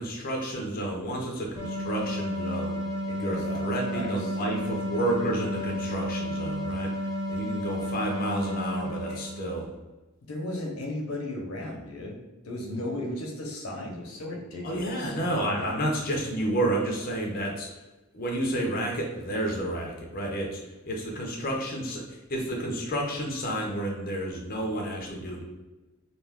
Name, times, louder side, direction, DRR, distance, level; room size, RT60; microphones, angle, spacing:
voice 1, 0.0-2.8 3.2-9.7 14.6-17.7 18.1-25.4, right 1 dB, 45° left, -1 dB, 0.6 m, -30 dB
sound 1, 1.6-9.7, equal, 20° right, 0.8 m, -32 dB
voice 2, 3.0-4.4 9.1-9.2 10.3-12.2 12.4-15.2, left 1 dB, 80° left, 0 dB, 0.7 m, -35 dB
2.4 x 2.3 x 3.4 m, 1.1 s
head